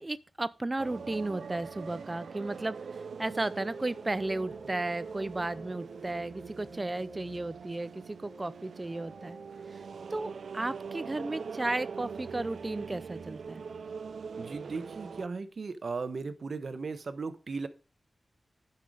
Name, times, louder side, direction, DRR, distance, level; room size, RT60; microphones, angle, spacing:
voice 1, 0.0-2.8 3.2-9.4 9.7-9.8 10.1-13.6, right 2 dB, 25° right, 0.4 m, -34 dB
sound 1, 0.8-15.3, right 5 dB, 85° right, 0.4 m, -42 dB
sound 2, 3.2-11.7, left 1 dB, 45° left, 3.0 m, -55 dB
voice 2, 14.4-17.7, right 4 dB, 55° right, 1.0 m, -37 dB
11.5 x 5.7 x 4.9 m
wide cardioid pair, 145°, 0 cm